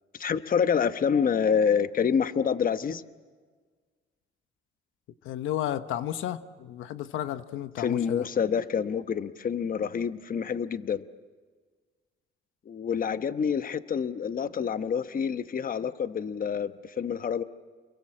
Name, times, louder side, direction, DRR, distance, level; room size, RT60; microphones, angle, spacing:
voice 1, 0.1-3.0 7.8-11.0 12.7-17.4, left 7 dB, 45° left, 11 dB, 1.0 m, -27 dB
voice 2, 5.2-8.3, left 12 dB, 90° left, 11 dB, 1.0 m, -33 dB
29.5 x 22.5 x 7.5 m, 1.5 s
cardioid pair, 90°, 20 cm